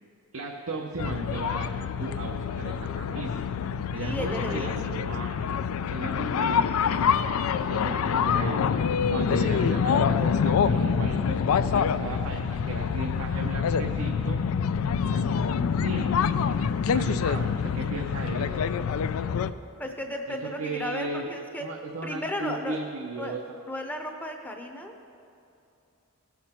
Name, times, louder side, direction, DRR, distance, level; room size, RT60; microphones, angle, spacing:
voice 1, 0.3-3.4 3.9-5.3 5.9-7.4 7.7-8.6 9.1-11.4 11.7-14.4 15.0-16.2 16.9-18.6 20.3-21.3 21.6-23.4, right 3 dB, 80° right, 1 dB, 0.7 m, -36 dB
sound 1, 1.0-19.5, left 6 dB, 80° left, 0.3 m, -26 dB
voice 2, 4.0-4.9 19.8-21.7 22.0-22.8 23.2-23.4 23.7-25.0, left 1 dB, 10° left, 3 dB, 0.7 m, -34 dB
17.0 x 6.0 x 4.3 m, 2.7 s
head